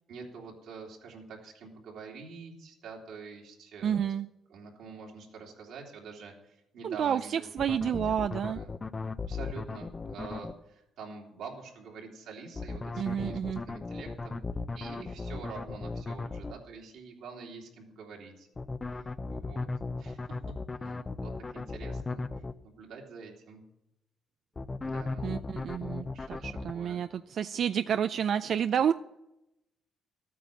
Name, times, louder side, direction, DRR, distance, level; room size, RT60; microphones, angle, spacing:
voice 1, 0.1-4.1 4.5-7.5 7.9-8.7 9.3-13.4 13.6-14.4 14.7-18.5 18.9-19.7 20.0-22.2 22.6-23.6 24.8-25.3 26.1-27.0, right 5 dB, 80° right, -1 dB, 3.1 m, -46 dB
voice 2, 3.8-4.3 6.8-8.6 13.0-13.6 25.2-28.9, right 8 dB, 65° right, 11 dB, 0.4 m, -30 dB
sound 1, 7.6-10.5 12.5-16.5 18.6-22.5 24.6-26.7, left 3 dB, 25° left, 0.6 m, -36 dB
13.0 x 9.3 x 7.2 m, 0.88 s
cardioid pair, 90°, 0 cm